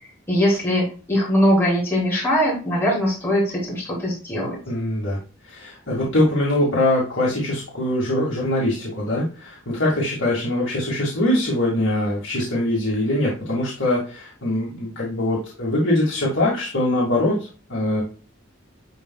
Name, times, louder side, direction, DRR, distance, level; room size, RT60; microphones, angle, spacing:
voice 1, 0.3-4.6, equal, 10° left, -6 dB, 3.4 m, -21 dB
voice 2, 4.7-5.2 5.4-17.4 17.7-18.0, left 1 dB, 65° left, -5 dB, 2.1 m, -22 dB
10.5 x 4.1 x 2.3 m, 0.36 s
head